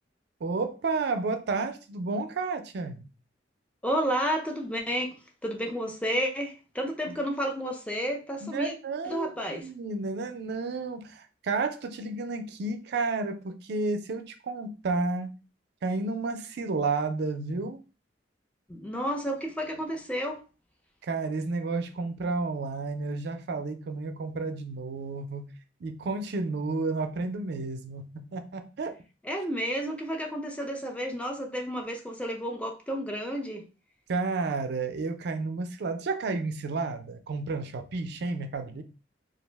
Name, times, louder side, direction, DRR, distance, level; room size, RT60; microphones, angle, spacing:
voice 1, 0.4-3.1 7.1-7.2 8.4-9.3 9.6-15.3 15.8-17.8 21.0-25.5 25.8-28.9 34.1-38.8, right 3 dB, 60° right, 0.4 m, -31 dB
voice 2, 3.8-5.1 5.4-8.7 9.1-9.6 18.7-20.4 29.2-33.6, equal, 5° left, 0.4 m, -31 dB
2.4 x 2.0 x 3.2 m
head